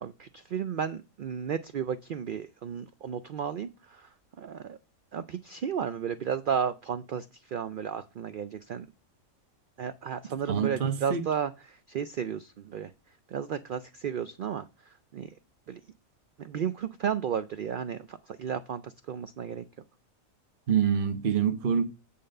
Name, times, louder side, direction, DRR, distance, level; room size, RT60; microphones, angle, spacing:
voice 1, 0.0-4.1 4.4-4.8 5.1-7.3 7.5-8.9 9.8-12.9 13.3-14.6 15.1-15.3 15.7-15.8 16.4-19.6, right 8 dB, 85° right, 0.4 m, -33 dB
voice 2, 10.5-11.2 20.7-21.8, right 7 dB, 45° right, 1.0 m, -26 dB
8.6 x 3.6 x 6.5 m
omnidirectional pair, 1.5 m